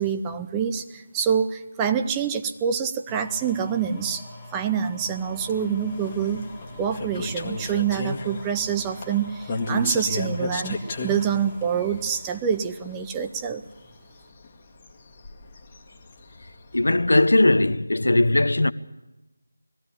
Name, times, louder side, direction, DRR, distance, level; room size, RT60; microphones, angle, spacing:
voice 1, 0.0-4.2 4.5-6.4 6.8-13.6, right 7 dB, 10° right, 0.6 m, -26 dB
sound 1, 3.1-13.1 13.7-13.8, left 1 dB, 5° left, 2.2 m, -44 dB
sound 2, 5.2-17.6, left 2 dB, 25° left, 1.6 m, -35 dB
voice 2, 16.7-18.7, left 2 dB, 70° left, 0.8 m, -19 dB
20.0 x 15.0 x 8.6 m
figure-of-eight pair, 165°, 0 cm